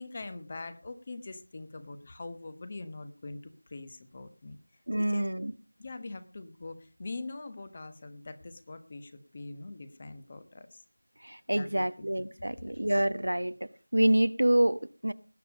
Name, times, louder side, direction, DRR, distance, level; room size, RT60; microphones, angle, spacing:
voice 1, 0.0-4.6 5.0-5.2 5.8-10.8 11.5-12.8, left 3 dB, 25° left, 11 dB, 1.2 m, -43 dB
voice 2, 4.9-5.5 11.2-13.6 13.9-15.1, right 1 dB, 85° right, 13 dB, 1.1 m, -27 dB
19.0 x 7.9 x 5.2 m, 0.37 s
figure-of-eight pair, 175°, 0 cm